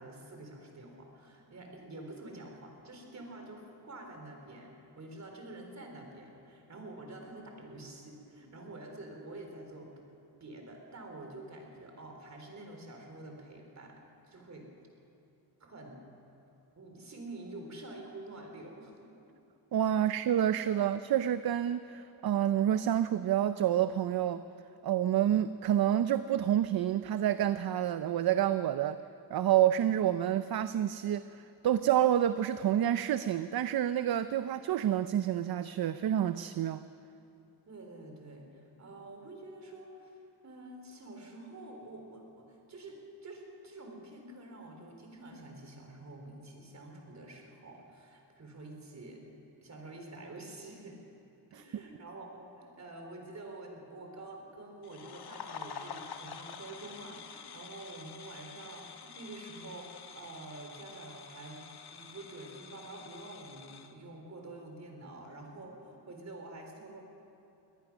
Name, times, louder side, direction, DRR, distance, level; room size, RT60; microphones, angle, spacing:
voice 1, 0.0-10.0 10.4-14.7 15.6-16.0 16.8-18.9 37.7-49.2 49.6-51.0 51.5-67.0, right 2 dB, 45° right, 2 dB, 4.0 m, -48 dB
voice 2, 19.7-24.4 24.8-29.0 29.3-36.8 51.5-51.6, right 11 dB, 65° right, 12 dB, 0.6 m, -28 dB
sound 1, 54.8-63.9, left 6 dB, 70° left, 1.3 m, -48 dB
23.5 x 18.0 x 6.2 m, 2.9 s
wide cardioid pair, 130°, 40 cm